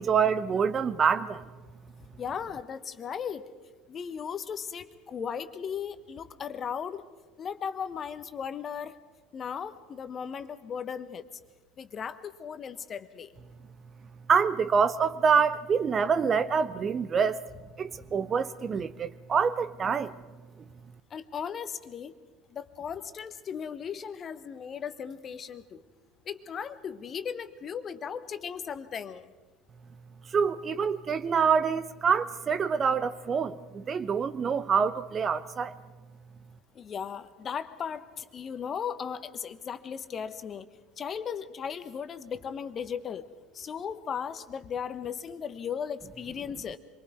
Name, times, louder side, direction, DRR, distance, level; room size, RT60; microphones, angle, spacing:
voice 1, 0.0-1.4 14.3-17.5 17.8-20.2 30.3-35.7, right 6 dB, 30° right, 0.8 m, -26 dB
voice 2, 2.2-3.4 3.9-7.0 7.4-8.9 9.3-11.2 11.8-13.3 21.1-22.1 22.5-25.8 26.3-29.3 36.7-40.7 41.0-43.3 43.5-46.8, left 7 dB, 35° left, 1.2 m, -36 dB
26.5 x 23.5 x 4.7 m
figure-of-eight pair, 65°, 0 cm